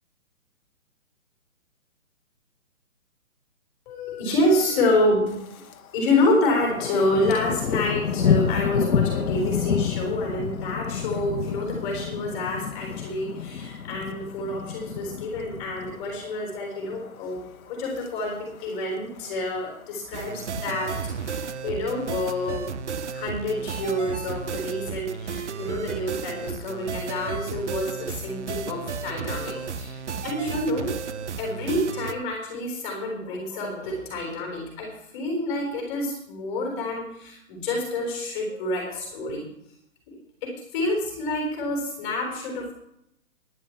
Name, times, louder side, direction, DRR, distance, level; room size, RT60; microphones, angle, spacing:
voice 1, 3.9-5.6 5.9-22.6 23.1-31.0 31.4-39.5 40.1-42.7, left 1 dB, 15° left, 0 dB, 4.0 m, -28 dB
Thunder, 5.3-5.8 6.1-16.4 16.8-17.2 17.6-18.1 18.3-18.4 18.6-18.7 19.1-19.7 20.4-21.4, left 7 dB, 80° left, 1.1 m, -29 dB
sound 1, 20.1-32.1, right 6 dB, 55° right, 0.9 m, -33 dB
11.0 x 8.5 x 8.5 m, 0.78 s
hypercardioid pair, 170°, 42 cm